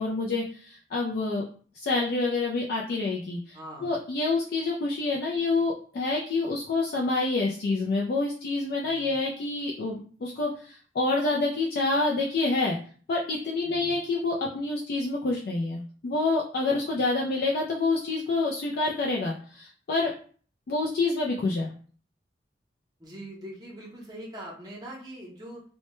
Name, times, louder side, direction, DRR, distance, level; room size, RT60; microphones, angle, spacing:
voice 1, 0.0-1.4 1.7-12.8 13.1-20.1 20.7-21.7, left 3 dB, 55° left, -2 dB, 0.3 m, -27 dB
voice 2, 3.5-3.9 8.9-9.2 13.6-13.9 16.9-17.1 23.0-25.6, right 1 dB, 20° right, -3 dB, 0.7 m, -42 dB
2.1 x 2.1 x 2.9 m, 0.44 s
head